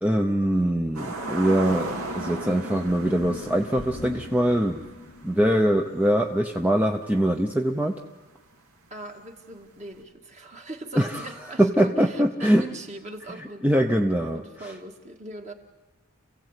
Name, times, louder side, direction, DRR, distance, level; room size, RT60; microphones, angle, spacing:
voice 1, 0.0-4.9 5.2-8.0 11.0-11.3 11.6-12.7 13.4-14.7, right 1 dB, 5° right, 3 dB, 0.7 m, -23 dB
sound 1, 0.9-6.4 6.8-6.9 10.0-10.1, right 2 dB, 70° right, 2.6 m, -36 dB
sound 2, 2.8-7.1, left 3 dB, 45° left, 0.8 m, -43 dB
voice 2, 8.9-13.7 14.3-15.5, right 2 dB, 30° right, 3 dB, 2.0 m, -40 dB
29.0 x 16.5 x 8.3 m, 1.2 s
head